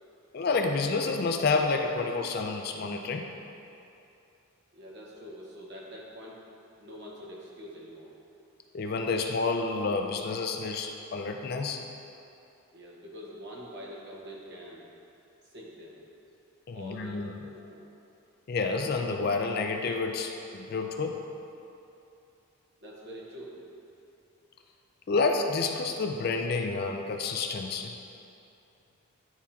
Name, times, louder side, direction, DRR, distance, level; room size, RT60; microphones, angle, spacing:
voice 1, 0.3-3.3 8.7-11.8 16.7-17.3 18.5-21.2 25.1-27.9, left 4 dB, 45° left, 4 dB, 0.3 m, -29 dB
voice 2, 4.7-6.4 6.8-8.1 12.7-14.9 15.4-16.0 16.7-17.8 22.8-23.6, equal, 50° right, -4 dB, 1.1 m, -45 dB
10.0 x 3.5 x 2.8 m, 2.7 s
head